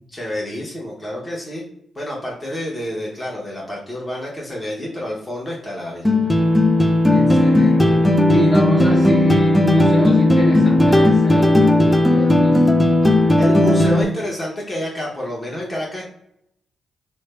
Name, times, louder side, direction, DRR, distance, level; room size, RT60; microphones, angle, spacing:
voice 1, 0.1-1.7 1.9-6.1 13.4-16.0, left 1 dB, 25° left, -4 dB, 1.0 m, -29 dB
sound 1, 6.0-14.0, left 1 dB, 5° left, 0.5 m, -15 dB
voice 2, 7.1-8.0 8.3-12.8, left 1 dB, 55° left, -3 dB, 1.4 m, -26 dB
3.2 x 2.1 x 3.2 m, 0.75 s
hypercardioid pair, 40°, 0 cm